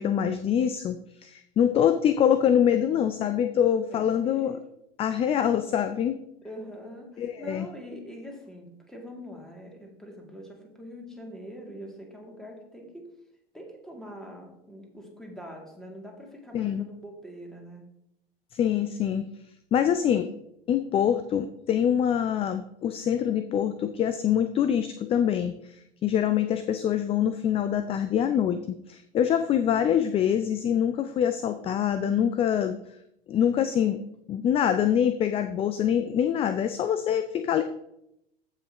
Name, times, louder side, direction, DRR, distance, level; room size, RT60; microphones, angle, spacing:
voice 1, 0.0-4.6 5.0-6.2 7.2-7.7 16.5-16.8 18.5-19.3 19.7-20.3 20.7-32.8 33.3-34.0 34.3-37.6, left 9 dB, 20° left, 10 dB, 0.4 m, -25 dB
voice 2, 3.7-4.6 6.4-13.1 13.5-17.9, equal, ahead, 0 dB, 2.3 m, -44 dB
14.5 x 5.8 x 2.9 m, 0.77 s
figure-of-eight pair, 85°, 31 cm